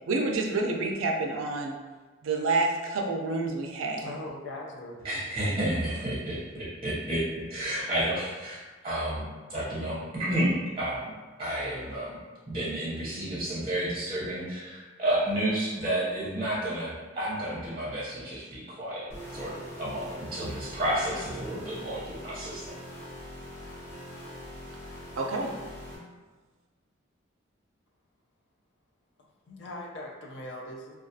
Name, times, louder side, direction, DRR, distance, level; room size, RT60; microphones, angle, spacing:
voice 1, 0.1-1.7 2.2-4.1 25.2-25.5, right 3 dB, 80° right, 1 dB, 0.4 m, -28 dB
voice 2, 4.0-5.0 5.7-5.8 29.5-30.9, left 1 dB, 60° left, -1 dB, 0.4 m, -40 dB
voice 3, 5.0-7.2 7.5-9.2 9.5-11.1 11.4-12.2 12.5-19.1 19.3-22.7, right 1 dB, 25° right, -9 dB, 0.6 m, -31 dB
sound 1, 19.1-26.0, equal, 15° left, 0.6 m, -43 dB
2.3 x 2.3 x 2.6 m, 1.3 s
head